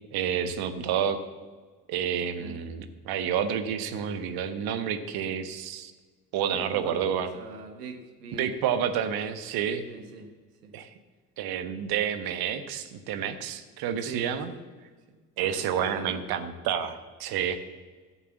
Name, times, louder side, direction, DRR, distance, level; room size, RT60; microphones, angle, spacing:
voice 1, 0.1-1.2 1.9-5.9 6.3-7.3 8.3-9.8 10.7-10.9 11.4-14.5 15.4-17.6, right 8 dB, 50° right, 9 dB, 1.3 m, -29 dB
voice 2, 6.5-8.5 9.9-10.3 10.6-10.7 14.0-14.6 15.1-15.2 15.4-16.4, right 4 dB, 75° right, 6 dB, 1.6 m, -43 dB
14.0 x 7.4 x 7.2 m, 1.4 s
figure-of-eight pair, 60°, 47 cm